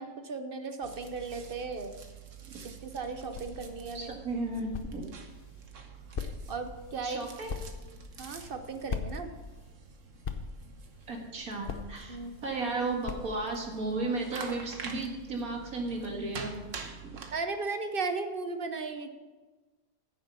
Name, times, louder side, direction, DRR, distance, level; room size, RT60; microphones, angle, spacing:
voice 1, 0.0-1.9 2.6-4.2 6.5-7.3 8.2-9.3 12.1-12.4 17.3-19.1, right 4 dB, 45° right, 7 dB, 0.9 m, -36 dB
sound 1, 0.8-17.4, right 6 dB, 65° right, 1.4 m, -47 dB
sound 2, 2.8-13.7, left 5 dB, 45° left, 0.8 m, -42 dB
voice 2, 3.9-5.0 7.0-7.5 11.1-16.5 16.8-17.2, right 2 dB, 85° right, 0 dB, 2.3 m, -34 dB
9.7 x 7.0 x 6.7 m, 1.3 s
omnidirectional pair, 1.5 m